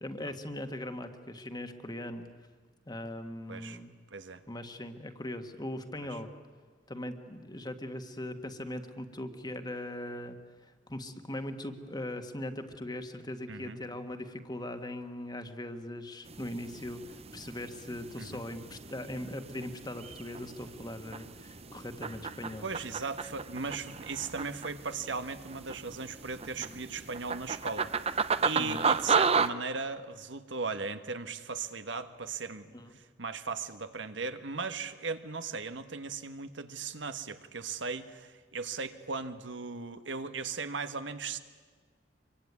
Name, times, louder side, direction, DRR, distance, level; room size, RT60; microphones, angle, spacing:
voice 1, 0.0-2.3 2.9-3.9 4.5-6.3 6.9-10.4 10.6-22.7 26.6-26.8 28.6-28.9 32.7-32.9, left 1 dB, 20° left, 7 dB, 1.7 m, -40 dB
voice 2, 3.5-3.8 4.1-4.4 6.1-6.2 13.5-13.8 18.2-18.4 22.6-41.4, right 4 dB, 75° right, 9 dB, 1.5 m, -37 dB
sound 1, 16.3-29.5, right 5 dB, 35° right, 0.9 m, -34 dB
25.5 x 23.0 x 9.7 m, 1.5 s
head